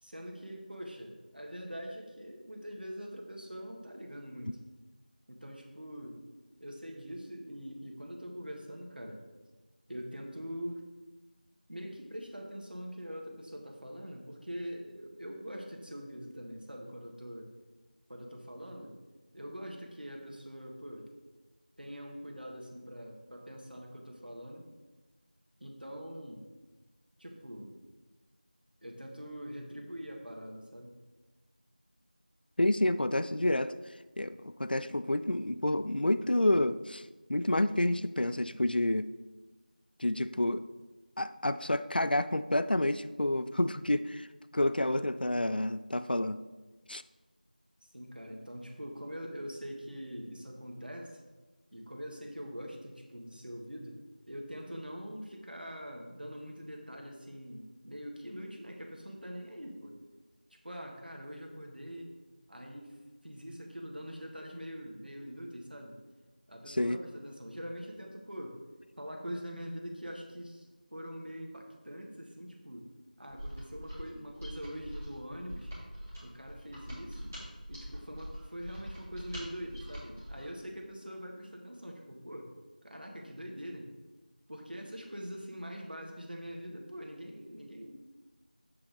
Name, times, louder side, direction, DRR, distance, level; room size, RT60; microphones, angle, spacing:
voice 1, 0.0-4.6 5.3-6.2 6.6-9.2 9.9-10.8 11.7-17.5 18.1-18.9 19.3-21.1 21.8-24.7 25.6-26.4 27.2-27.7 28.8-30.9 47.8-51.2 51.7-60.0 60.6-62.1 62.5-62.9 63.2-66.0 66.5-68.6 69.0-70.7 70.9-72.9 73.2-75.7 76.2-77.4 77.7-82.5 82.8-83.9 84.5-87.9, equal, 75° right, 1 dB, 1.7 m, -43 dB
voice 2, 32.6-33.7 34.2-39.1 40.0-40.6 41.2-44.3 44.5-46.4 46.9-47.0 66.7-67.0, left 1 dB, 80° left, 13 dB, 0.4 m, -29 dB
Mechanisms, 73.3-80.5, equal, 15° right, 2.6 m, -44 dB
7.7 x 6.0 x 3.9 m, 1.2 s
figure-of-eight pair, 175°, 5 cm